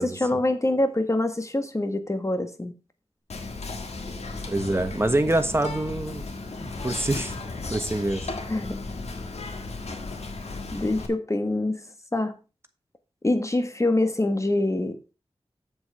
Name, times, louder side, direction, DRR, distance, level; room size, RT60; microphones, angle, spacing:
voice 1, 0.0-2.7 8.5-8.7 10.7-11.8 12.1-12.3 13.2-15.0, left 2 dB, 30° left, 1.5 m, -25 dB
Whispering, 3.3-11.1, left 3 dB, 90° left, 1.6 m, -35 dB
voice 2, 4.5-6.2 6.6-7.3 7.7-8.3, right 2 dB, 25° right, 1.3 m, -25 dB
7.8 x 7.2 x 4.8 m
wide cardioid pair, 75°, 11 cm